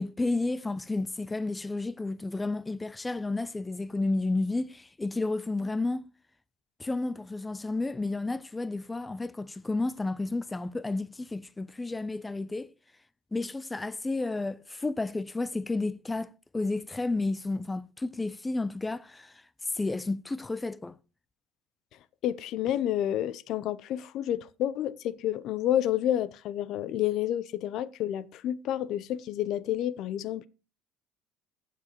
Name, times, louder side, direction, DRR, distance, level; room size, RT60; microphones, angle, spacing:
voice 1, 0.0-6.1 6.8-12.7 13.3-19.4 19.7-21.0, left 2 dB, 15° left, 0.4 m, -31 dB
voice 2, 22.2-30.5, left 11 dB, 65° left, 0.5 m, -29 dB
15.0 x 6.6 x 2.9 m
supercardioid pair, 95°, 0 cm